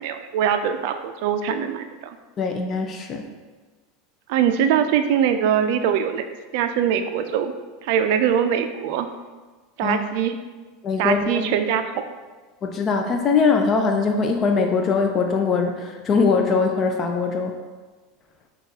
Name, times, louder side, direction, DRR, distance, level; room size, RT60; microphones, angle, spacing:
voice 1, 0.0-2.2 4.3-6.3 6.5-7.5 7.8-9.1 9.8-10.3 11.0-11.8, right 8 dB, 65° right, 8 dB, 0.3 m, -22 dB
voice 2, 2.4-3.3 9.8-10.0 10.8-11.5 12.6-17.5, left 4 dB, 35° left, 4 dB, 0.4 m, -21 dB
5.7 x 2.3 x 2.8 m, 1.3 s
hypercardioid pair, 105°, 0 cm